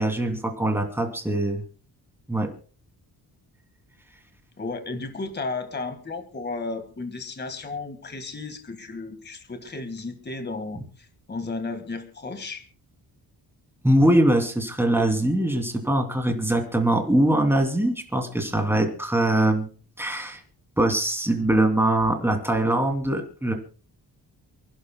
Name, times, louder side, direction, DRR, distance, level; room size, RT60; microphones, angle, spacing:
voice 1, 0.0-1.6 2.3-2.5 13.8-19.7 20.0-20.4 20.8-23.5, right 1 dB, 5° right, 3 dB, 2.8 m, -22 dB
voice 2, 4.6-12.6, left 3 dB, 25° left, 8 dB, 1.8 m, -34 dB
29.0 x 11.0 x 2.2 m, 0.37 s
wide cardioid pair, 140°, 39 cm